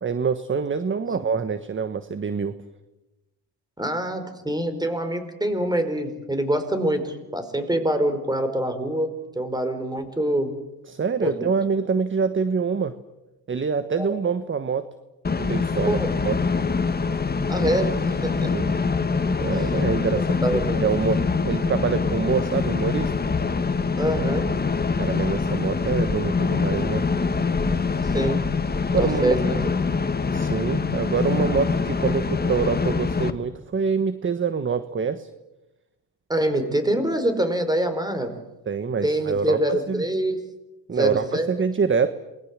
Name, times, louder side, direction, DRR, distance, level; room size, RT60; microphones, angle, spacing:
voice 1, 0.0-2.6 10.9-12.9 13.5-14.8 15.3-16.0 16.2-16.3 18.5-18.7 19.4-23.1 25.0-27.1 28.9-29.4 30.3-35.3 38.7-40.0 40.9-42.1, right 5 dB, 25° right, 12 dB, 1.3 m, -25 dB
voice 2, 3.8-10.5 11.2-11.4 13.9-14.1 15.9-16.1 17.5-18.5 19.5-19.7 20.1-20.8 24.0-24.5 28.0-28.4 28.9-29.6 36.3-38.3 39.0-40.4 40.9-41.5, right 1 dB, 10° right, 9 dB, 4.8 m, -25 dB
sound 1, 15.2-33.3, left 4 dB, 20° left, 1.8 m, -24 dB
28.0 x 22.0 x 7.5 m, 1.0 s
cardioid pair, 100°, 46 cm